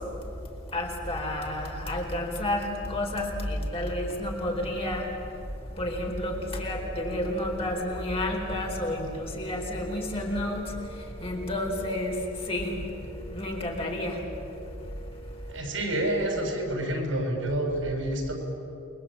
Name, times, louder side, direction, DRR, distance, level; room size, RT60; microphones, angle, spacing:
voice 1, 0.7-5.1 5.8-12.8 13.3-14.2, left 1 dB, 30° left, 0 dB, 4.6 m, -30 dB
voice 2, 15.5-18.3, right 1 dB, 80° right, 2 dB, 6.8 m, -28 dB
29.0 x 22.5 x 8.9 m, 2.7 s
head